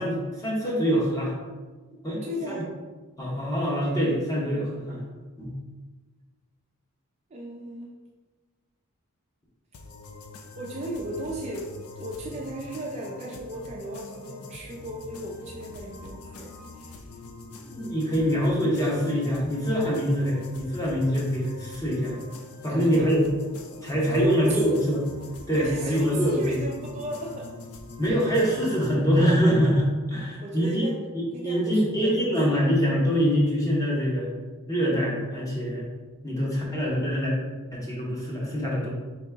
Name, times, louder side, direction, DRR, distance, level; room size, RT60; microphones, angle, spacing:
voice 1, 0.0-1.3 2.0-2.6 3.2-5.0 5.4-5.5 17.6-22.2 22.6-23.2 23.8-25.0 25.5-26.6 28.0-30.9 31.1-34.3 34.7-35.9 36.2-37.3 37.7-38.9, equal, 15° left, -5 dB, 1.0 m, -24 dB
voice 2, 2.2-2.7 7.3-8.0 10.6-17.0 22.7-23.3 24.0-24.8 25.5-27.5 30.4-31.0 31.3-32.6, equal, 30° right, -2 dB, 0.4 m, -36 dB
sound 1, 9.7-28.9, left 3 dB, 80° left, 0.5 m, -43 dB
4.7 x 3.0 x 3.4 m, 1.3 s
head